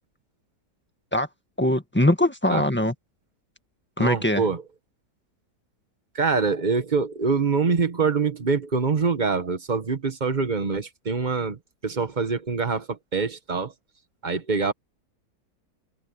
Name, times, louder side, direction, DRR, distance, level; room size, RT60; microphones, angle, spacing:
voice 1, 1.6-2.9 4.0-4.4, left 1 dB, 5° left, 1.6 m, -22 dB
voice 2, 4.0-4.6 6.1-13.7 14.2-14.7, right 4 dB, 30° right, 1.3 m, -25 dB
omnidirectional pair, 1.7 m